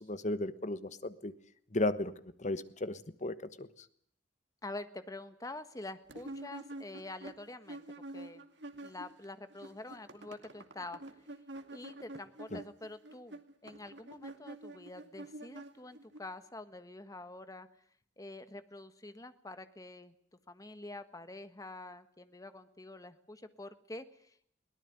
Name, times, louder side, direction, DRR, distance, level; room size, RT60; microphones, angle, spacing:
voice 1, 0.0-1.3 1.7-2.1 2.4-3.7 12.5-12.6, left 2 dB, 40° left, 13 dB, 1.3 m, -35 dB
voice 2, 4.6-7.8 8.1-8.4 8.8-11.0 11.7-17.7 18.2-20.1 20.5-24.5, left 2 dB, 20° left, 10 dB, 1.5 m, -47 dB
sound 1, 6.1-9.3 9.5-16.2, right 1 dB, 75° right, 2.3 m, -47 dB
22.5 x 18.0 x 9.4 m, 0.65 s
head